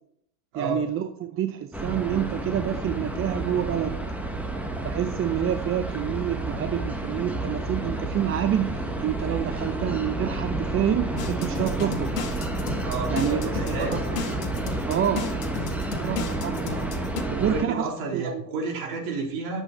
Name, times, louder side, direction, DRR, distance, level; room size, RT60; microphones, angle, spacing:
voice 1, 0.5-4.0 4.8-12.1 13.1-14.5 14.9-15.3 15.9-16.9 17.3-17.9 18.1-18.4, right 10 dB, 25° right, 8 dB, 0.7 m, -28 dB
sound 1, 1.7-17.6, right 2 dB, 5° right, 1.4 m, -30 dB
sound 2, 11.2-17.2, left 6 dB, 75° left, 2.0 m, -34 dB
voice 2, 12.8-13.9 17.3-19.6, right 3 dB, 55° right, 0 dB, 3.9 m, -31 dB
10.0 x 8.0 x 4.3 m, 0.71 s
hypercardioid pair, 90°, 48 cm